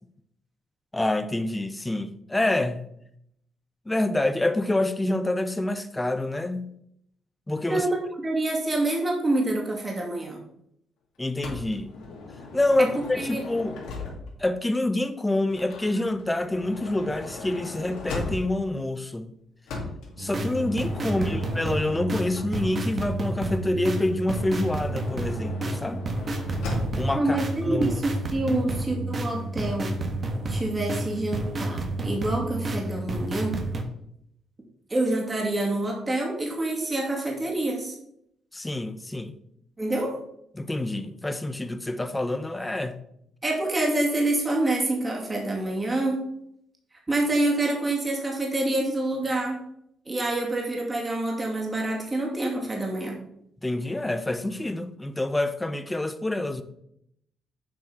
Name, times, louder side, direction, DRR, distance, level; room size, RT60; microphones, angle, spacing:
voice 1, 0.9-2.9 3.9-6.7 7.5-7.9 11.2-11.9 12.5-13.8 14.4-19.3 20.2-26.0 27.0-27.4 27.6-28.0 38.5-39.3 40.6-43.0 53.6-56.6, left 1 dB, 15° left, 0.8 m, -27 dB
voice 2, 7.7-10.4 12.8-13.4 21.2-21.4 27.1-30.0 30.5-33.6 34.9-38.0 39.8-40.1 43.4-46.2 47.1-49.6 50.1-53.3, right 2 dB, 20° right, 2.4 m, -27 dB
Motor vehicle (road) / Sliding door, 11.4-14.5 15.5-18.7 19.7-23.0 24.2-27.2, left 3 dB, 80° left, 2.1 m, -38 dB
sound 1, 20.2-33.8, right 1 dB, 40° right, 1.3 m, -30 dB
7.6 x 4.6 x 5.6 m
cardioid pair, 90°, 0 cm